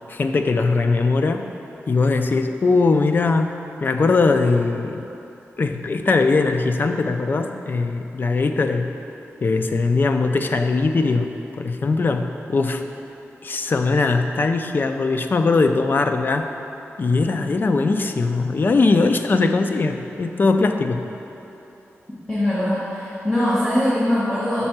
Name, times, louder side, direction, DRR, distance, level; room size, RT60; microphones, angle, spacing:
voice 1, 0.1-1.5 1.9-5.0 5.6-9.0 9.4-11.3 11.6-12.9 13.4-16.5 17.0-21.1, left 3 dB, 45° left, 6 dB, 0.3 m, -20 dB
voice 2, 22.3-24.7, left 1 dB, 20° left, -11 dB, 1.2 m, -21 dB
5.4 x 4.3 x 5.9 m, 2.9 s
wide cardioid pair, 140°, 5 cm